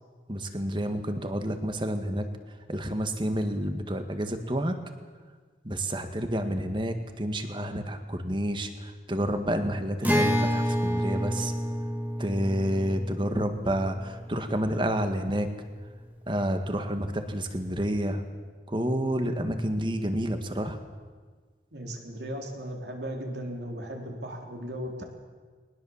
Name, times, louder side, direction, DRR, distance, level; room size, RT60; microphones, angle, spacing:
voice 1, 0.3-4.8 5.6-11.5 12.2-15.5 16.3-18.2 18.7-20.8, equal, 25° right, 7 dB, 1.7 m, -29 dB
Acoustic guitar, 10.0-15.5, equal, 10° right, 1.8 m, -29 dB
voice 2, 21.7-25.0, equal, 75° right, 2 dB, 3.7 m, -36 dB
21.5 x 19.5 x 7.3 m, 1.5 s
head